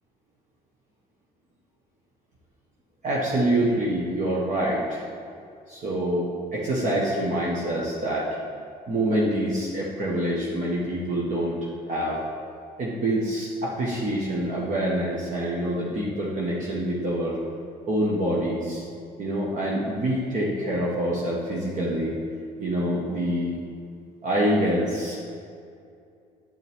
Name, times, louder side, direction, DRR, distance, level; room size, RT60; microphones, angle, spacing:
voice 1, 3.0-5.0 5.7-8.3 8.9-11.6 11.9-12.2 12.8-17.4 17.9-18.8 19.2-22.2 22.6-23.6 24.2-25.2, right 1 dB, 45° right, -5 dB, 1.5 m, -26 dB
9.3 x 7.7 x 3.6 m, 2.4 s
cardioid pair, 110°, 17 cm